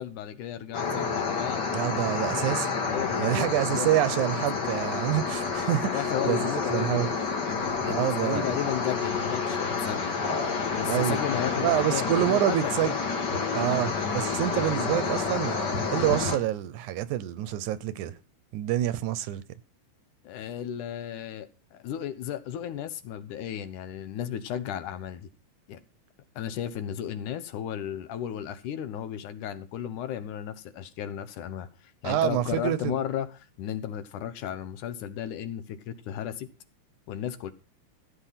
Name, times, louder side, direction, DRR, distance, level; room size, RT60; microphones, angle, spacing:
voice 1, 0.0-1.6 2.9-4.2 5.7-7.1 7.4-10.1 10.7-13.0 20.2-25.3 25.7-25.8 26.4-31.7 32.0-36.5 37.1-37.5, left 10 dB, 75° left, 2.4 m, -34 dB
sound 1, 0.7-16.4, left 5 dB, 40° left, 2.1 m, -29 dB
voice 2, 1.7-2.7 3.2-6.4 6.7-7.1 7.8-8.5 10.9-11.2 11.6-13.0 13.5-15.6 15.9-18.1 18.5-19.4 32.0-32.9, right 13 dB, 75° right, 2.1 m, -27 dB
15.0 x 8.3 x 5.8 m
omnidirectional pair, 3.8 m